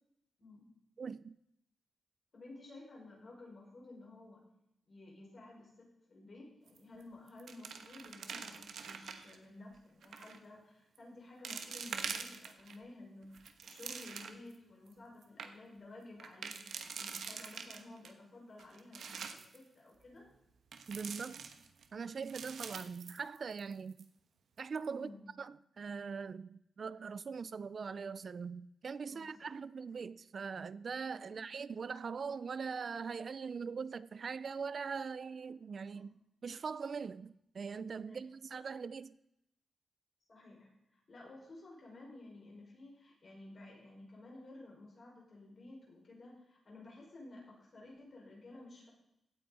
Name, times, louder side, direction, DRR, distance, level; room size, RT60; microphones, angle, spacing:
voice 1, 1.0-1.3 20.9-21.4 21.9-24.1 24.6-25.1 25.4-36.1 36.4-39.1, right 5 dB, 45° right, 0.3 m, -41 dB
voice 2, 2.3-4.4 4.9-16.7 17.0-20.3 24.9-25.2 29.0-29.3 31.3-31.4 35.9-36.1 38.1-38.3 40.3-48.9, left 2 dB, 40° left, 5.5 m, -54 dB
sound 1, 6.7-7.0 7.3-9.4 10.0-10.4 10.9-11.0 11.4-12.8 13.2-14.5 14.9-15.0 15.2-15.5 16.2-18.1 18.6-19.6 20.7-21.9 22.2-23.7 24.0-24.1 24.6-24.9, right 6 dB, 80° right, 1.2 m, -45 dB
16.5 x 9.0 x 4.2 m
wide cardioid pair, 165°, 0 cm